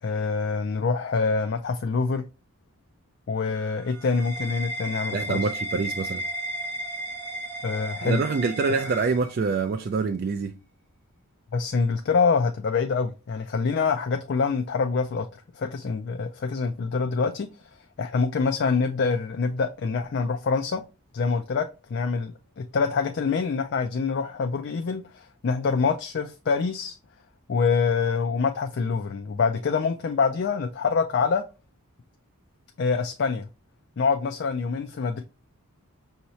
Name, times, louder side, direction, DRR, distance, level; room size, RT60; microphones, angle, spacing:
voice 1, 0.0-2.2 3.3-5.4 7.6-8.2 11.5-15.3 15.5-17.5 18.0-20.8 21.1-27.0 27.5-31.4 32.8-33.5 34.0-35.2, left 5 dB, 50° left, 0.3 m, -25 dB
sound 1, 3.4-9.8, right 1 dB, 10° left, 0.7 m, -35 dB
voice 2, 5.1-6.2 8.0-10.5, right 4 dB, 40° right, 0.3 m, -26 dB
5.6 x 2.8 x 3.0 m
head